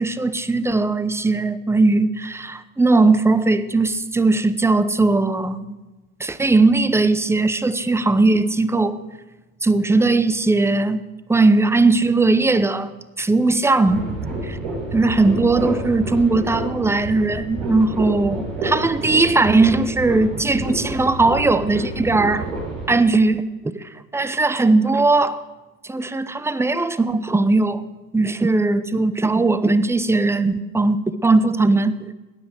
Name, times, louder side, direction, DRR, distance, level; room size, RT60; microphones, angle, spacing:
voice 1, 0.0-5.8 6.2-9.0 9.6-11.0 11.3-12.9 13.2-14.2 14.4-14.6 14.9-22.5 22.9-23.8 24.1-25.4 25.8-27.9 28.1-31.9, right 3 dB, 5° right, 0.8 m, -19 dB
sound 1, 13.8-22.9, right 2 dB, 75° right, 5.0 m, -29 dB
16.0 x 10.5 x 7.9 m
hypercardioid pair, 75°, 41 cm